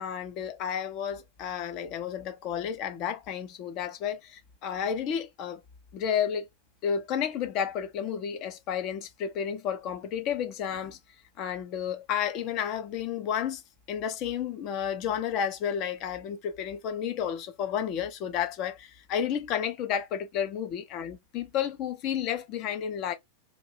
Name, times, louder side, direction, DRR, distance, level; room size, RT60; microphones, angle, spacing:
voice 1, 0.0-5.6 5.9-6.5 6.8-11.0 11.4-13.6 13.9-23.1, left 8 dB, 40° left, 0.6 m, -31 dB
2.5 x 2.1 x 3.3 m
figure-of-eight pair, 90°, 0 cm